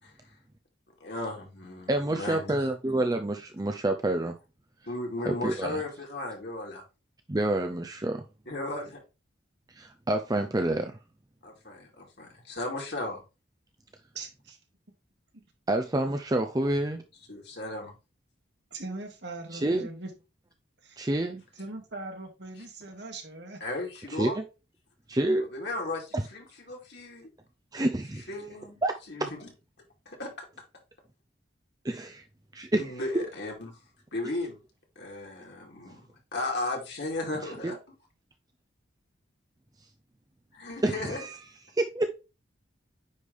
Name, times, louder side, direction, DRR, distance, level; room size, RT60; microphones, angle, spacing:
voice 1, 1.0-2.6 4.9-6.8 8.5-9.0 11.4-13.2 17.3-17.9 23.6-24.4 25.5-27.3 28.3-28.8 29.1-29.5 30.1-30.4 32.8-33.8 34.1-34.6 35.0-36.0 36.3-37.8 40.5-41.2, left 2 dB, 60° left, 2.5 m, -35 dB
voice 2, 1.9-4.4 5.3-5.8 7.3-8.2 9.7-11.0 15.7-17.0 19.5-19.9 21.0-21.4 24.1-24.4 25.1-25.5 26.1-26.2 27.7-28.3 28.8-28.9 31.8-32.2 32.5-32.9 37.6-37.7 40.8-41.4 41.8-42.1, right 1 dB, 20° right, 0.5 m, -28 dB
voice 3, 14.1-14.6 18.7-20.1 20.8-21.0 21.6-23.6, right 2 dB, 60° right, 1.8 m, -40 dB
9.5 x 3.3 x 3.5 m
head